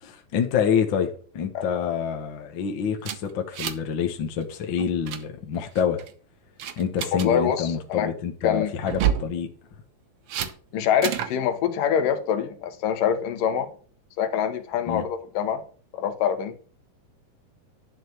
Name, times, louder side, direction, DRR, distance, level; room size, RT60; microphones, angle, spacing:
voice 1, 0.0-6.0 6.8-9.5 14.8-15.0, left 7 dB, 55° left, 1.4 m, -27 dB
sound 1, 3.0-3.9 4.2-4.4 4.8-5.2 5.8-6.1 6.6-7.3 8.8-9.3 10.3-10.5 11.0-11.3, right 10 dB, 65° right, 1.5 m, -28 dB
voice 2, 7.2-8.1 8.4-8.7 10.7-13.7 14.2-15.6 15.9-16.6, left 8 dB, 85° left, 2.8 m, -25 dB
11.0 x 5.2 x 7.9 m
omnidirectional pair, 3.7 m